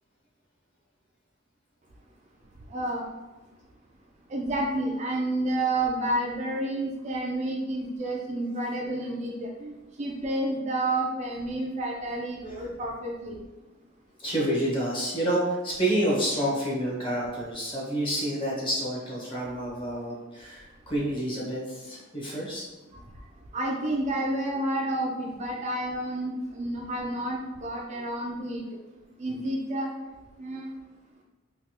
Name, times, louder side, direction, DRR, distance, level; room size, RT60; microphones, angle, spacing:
voice 1, 2.7-3.1 4.3-13.4 23.5-28.6 29.2-29.9 30.4-30.7, right 1 dB, 35° right, -1 dB, 0.3 m, -30 dB
voice 2, 14.2-22.6, right 1 dB, 25° left, -6 dB, 0.9 m, -28 dB
3.2 x 2.3 x 2.8 m, 1.1 s
head